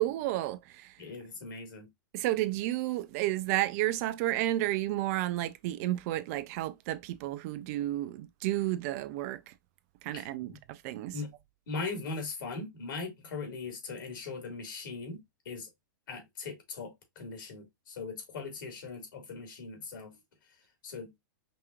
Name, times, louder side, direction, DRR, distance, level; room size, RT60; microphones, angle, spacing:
voice 1, 0.0-0.9 2.1-9.4 10.0-11.1, right 15 dB, 50° right, 0.5 m, -31 dB
voice 2, 1.0-1.9 10.1-10.6 11.1-11.3 11.7-15.7 16.1-20.1 20.8-21.1, left 4 dB, 75° left, 2.0 m, -40 dB
5.3 x 2.8 x 2.4 m
hypercardioid pair, 120°, 11 cm